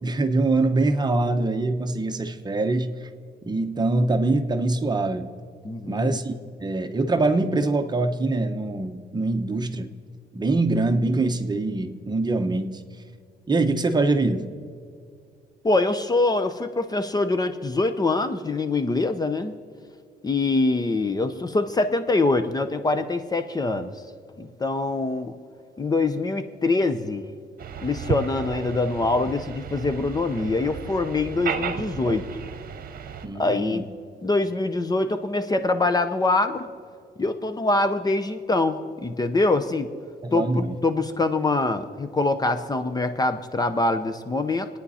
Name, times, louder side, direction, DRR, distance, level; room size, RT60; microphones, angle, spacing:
voice 1, 0.0-3.1 3.5-5.3 5.9-6.3 6.6-9.9 10.3-12.8 13.5-14.5 33.2-33.8 40.2-40.8, right 2 dB, 25° right, 7 dB, 1.0 m, -24 dB
voice 2, 5.6-6.1 15.6-19.5 20.2-23.9 24.4-25.3 25.8-27.3 27.8-32.2 33.3-33.9 34.2-36.7 37.2-39.9 40.3-44.7, left 2 dB, 20° left, 10 dB, 0.7 m, -24 dB
sound 1, 27.6-33.3, right 7 dB, 60° right, 1.1 m, -33 dB
28.5 x 9.5 x 4.2 m, 2.2 s
cardioid pair, 120°, 17 cm